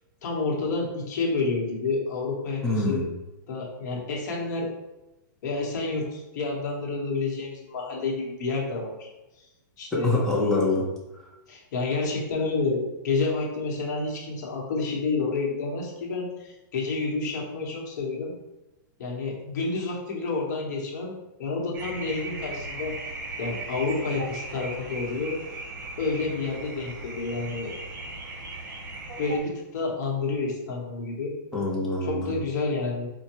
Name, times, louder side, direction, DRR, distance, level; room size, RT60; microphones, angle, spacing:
voice 1, 0.2-3.0 3.5-4.7 5.4-9.1 9.8-10.1 11.5-18.3 19.0-22.9 23.4-25.4 26.0-27.7 29.2-31.3 32.0-33.1, left 3 dB, 60° left, -1 dB, 1.0 m, -29 dB
voice 2, 2.6-3.1 9.9-10.8 31.5-32.3, left 2 dB, 5° left, -5 dB, 0.7 m, -25 dB
sound 1, 21.7-29.4, right 2 dB, 70° right, 0.9 m, -37 dB
4.5 x 2.2 x 2.9 m, 0.99 s
hypercardioid pair, 155°, 11 cm